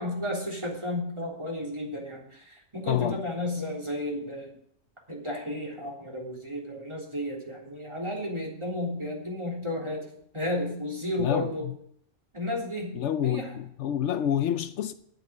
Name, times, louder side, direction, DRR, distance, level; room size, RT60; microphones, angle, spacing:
voice 1, 0.0-4.5 5.1-10.0 10.3-11.7 12.3-13.5, left 1 dB, 25° right, 3.5 m, -33 dB
voice 2, 2.9-3.2 11.2-11.7 12.9-14.9, left 10 dB, 75° left, 0.9 m, -28 dB
9.8 x 7.8 x 8.4 m
omnidirectional pair, 1.2 m